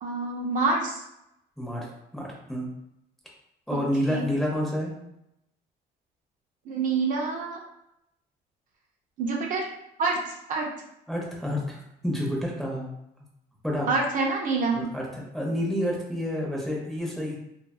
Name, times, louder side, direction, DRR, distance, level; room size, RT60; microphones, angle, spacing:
voice 1, 0.0-1.0 3.7-3.8 4.1-4.2 6.7-7.6 9.2-9.7 10.0-10.7 13.9-14.9, right 3 dB, 50° right, 0 dB, 0.5 m, -27 dB
voice 2, 2.1-2.7 3.7-4.9 11.1-11.8 12.0-12.8 13.6-13.9 14.7-15.1 15.3-17.4, equal, ahead, -3 dB, 0.7 m, -29 dB
2.6 x 2.4 x 2.3 m, 0.81 s
cardioid pair, 110°, 17 cm